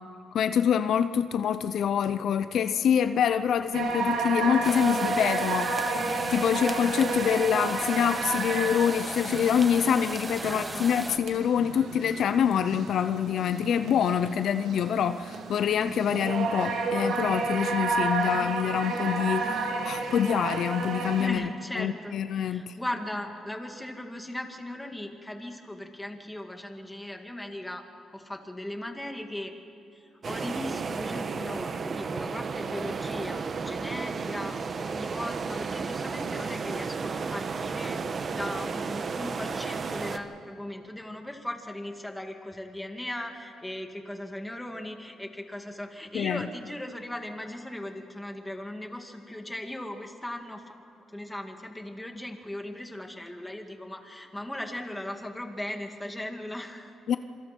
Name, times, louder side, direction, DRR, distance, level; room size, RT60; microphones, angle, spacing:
voice 1, 0.3-6.0 6.3-21.5 21.8-22.8 46.1-46.5 57.1-57.2, left 8 dB, 65° left, 11 dB, 0.7 m, -26 dB
sound 1, 3.7-21.3, right 3 dB, 70° right, 2.7 m, -31 dB
sound 2, 4.6-11.2, right 2 dB, 20° right, 1.4 m, -36 dB
voice 2, 10.4-10.9 21.2-27.9 28.1-29.5 29.9-50.8 51.1-56.9, left 1 dB, 10° left, 4 dB, 2.4 m, -38 dB
sound 3, 30.2-40.2, right 5 dB, 45° right, 1.2 m, -33 dB
26.5 x 25.0 x 4.6 m, 2.9 s
cardioid pair, 90°, 0 cm